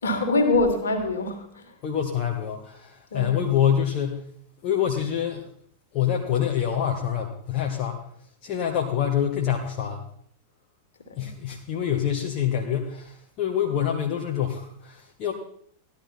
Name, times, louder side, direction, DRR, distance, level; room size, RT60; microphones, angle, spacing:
voice 1, 0.0-1.7 3.1-3.4 11.1-11.3, left 2 dB, 65° left, 5 dB, 2.5 m, -24 dB
voice 2, 1.8-4.2 4.6-5.5 5.9-8.0 8.4-10.1 11.2-15.3, left 9 dB, 40° left, 1 dB, 1.4 m, -26 dB
15.0 x 11.5 x 4.4 m, 0.64 s
figure-of-eight pair, 90°, 0 cm